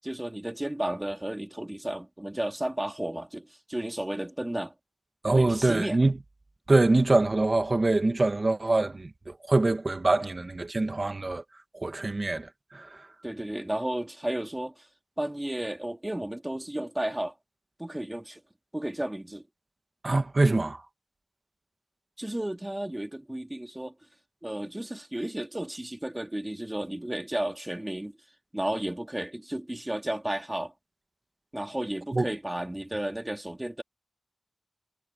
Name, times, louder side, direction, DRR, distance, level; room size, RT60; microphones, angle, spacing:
voice 1, 0.0-4.7 5.4-6.0 13.2-14.8 15.2-17.3 17.8-18.4 18.7-19.4 22.2-23.9 24.4-28.2 28.5-30.7 31.5-33.8, right 1 dB, 10° right, 3.3 m, -33 dB
voice 2, 5.2-6.1 6.7-11.4 11.7-12.9 20.0-20.8 32.1-32.2, right 2 dB, 30° right, 2.0 m, -24 dB
wide cardioid pair, 95°, 0 cm